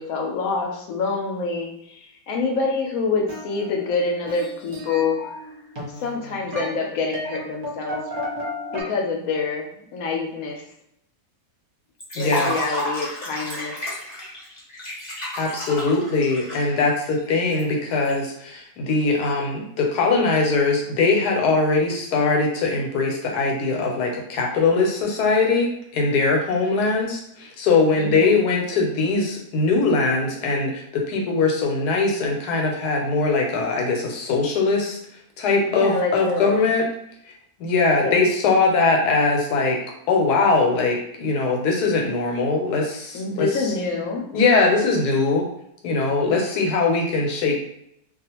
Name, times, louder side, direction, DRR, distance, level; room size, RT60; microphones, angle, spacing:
voice 1, 0.0-5.3 6.0-8.0 8.7-10.6 12.2-14.0 28.0-28.4 35.6-36.6 38.0-38.2 43.1-44.3, left 4 dB, 70° left, 1 dB, 1.0 m, -26 dB
sound 1, 3.3-8.8, left 1 dB, 40° right, 0.8 m, -34 dB
Liquid, 12.0-18.1, left 1 dB, 30° left, 0.6 m, -32 dB
voice 2, 12.1-12.5 15.4-35.0 35.4-36.9 37.6-39.8 40.1-43.5 44.3-45.4 45.8-47.6, left 3 dB, 90° left, 0 dB, 1.2 m, -21 dB
2.4 x 2.4 x 2.8 m, 0.74 s
omnidirectional pair, 1.7 m